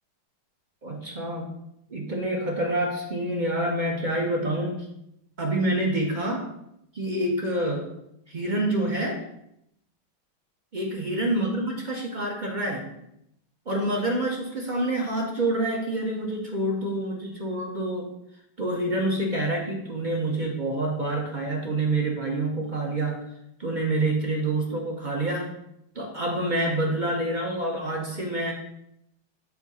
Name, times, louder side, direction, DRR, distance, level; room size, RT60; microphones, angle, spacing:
voice 1, 0.8-1.5 1.9-4.8 5.4-6.5 6.9-7.9 8.3-9.2 10.7-12.9 13.7-18.1 18.6-23.2 23.6-25.5 25.9-28.5, right 1 dB, 50° right, 0 dB, 0.5 m, -27 dB
7.1 x 2.7 x 5.3 m, 0.79 s
omnidirectional pair, 1.9 m